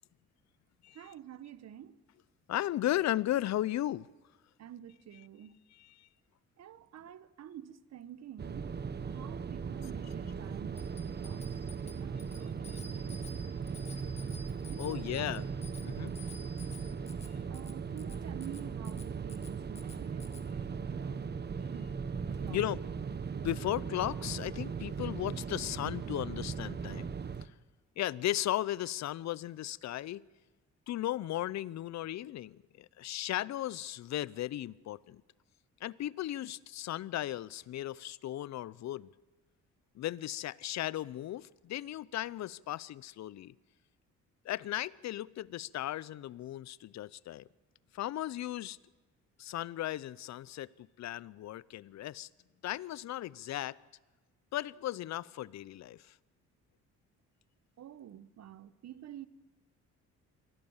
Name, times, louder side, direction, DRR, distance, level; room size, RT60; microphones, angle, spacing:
voice 1, 0.9-2.0 4.6-5.6 6.6-8.7 9.1-11.4 11.8-13.3 14.7-15.2 17.5-21.3 21.7-21.9 22.3-22.6 57.8-59.3, right 10 dB, 60° right, 1.1 m, -49 dB
voice 2, 2.5-4.1 5.8-6.1 14.8-15.4 15.8-16.1 22.5-22.8 23.4-27.1 27.4-27.5 28.0-30.2 30.9-35.2 35.8-39.1 39.9-43.5 44.4-47.5 47.9-48.8 49.4-50.7 51.0-52.3 52.6-53.8 54.5-56.1, left 13 dB, 65° left, 0.6 m, -36 dB
sound 1, 8.4-27.5, right 6 dB, 35° right, 1.0 m, -38 dB
Bicycle bell, 10.7-20.5, left 2 dB, 20° left, 1.8 m, -53 dB
24.0 x 17.0 x 7.3 m
cardioid pair, 90°, 30 cm